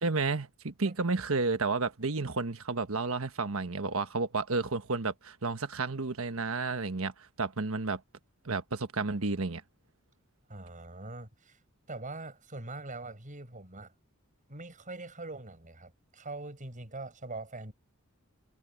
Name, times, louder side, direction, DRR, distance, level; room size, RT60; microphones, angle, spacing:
voice 1, 0.0-8.0 8.4-9.6, right 3 dB, 70° right, 1.3 m, -31 dB
voice 2, 10.5-11.6 11.9-13.9 14.5-17.7, right 2 dB, 40° right, 5.9 m, -43 dB
head